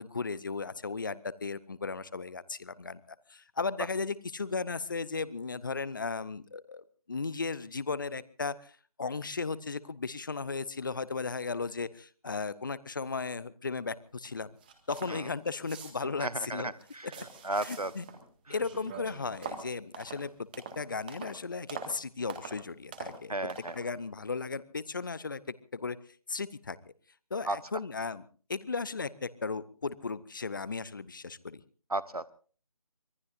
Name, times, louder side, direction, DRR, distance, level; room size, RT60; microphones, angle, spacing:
voice 1, 0.0-8.7 9.0-14.5 14.9-16.7 17.2-17.3 17.6-18.0 18.5-20.3 20.8-23.3 23.7-25.4 25.7-26.0 26.3-26.8 27.3-28.2 28.5-31.6, left 4 dB, 35° left, 18 dB, 0.8 m, -36 dB
sound 1, 14.3-14.4 14.6-15.2 15.5-16.2 16.7-18.3 18.6-21.4 21.7-22.0 22.3-22.6 22.9-23.2 23.5-23.8, right 5 dB, 15° right, 1.7 m, -44 dB
voice 2, 16.2-17.1 17.4-17.9 23.3-23.7 27.5-27.6 31.9-32.2, right 2 dB, 90° right, 17 dB, 1.0 m, -34 dB
25.0 x 20.0 x 2.6 m, 0.40 s
figure-of-eight pair, 160°, 19 cm